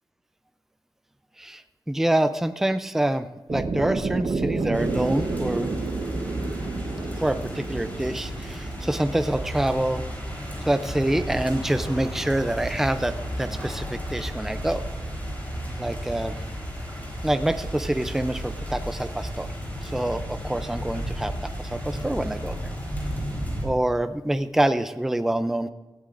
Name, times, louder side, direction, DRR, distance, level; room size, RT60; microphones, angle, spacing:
voice 1, 1.9-5.7 7.2-10.0 10.7-14.8 15.8-16.4 17.2-19.5 19.8-21.3 21.7-22.6 23.6-25.7, right 1 dB, 5° right, 10 dB, 0.5 m, -26 dB
sound 1, 3.5-9.6, right 3 dB, 55° right, 1.0 m, -30 dB
sound 2, 4.7-23.6, equal, 20° left, 4.0 m, -33 dB
18.0 x 14.5 x 2.6 m, 1.2 s
wide cardioid pair, 160°, 9 cm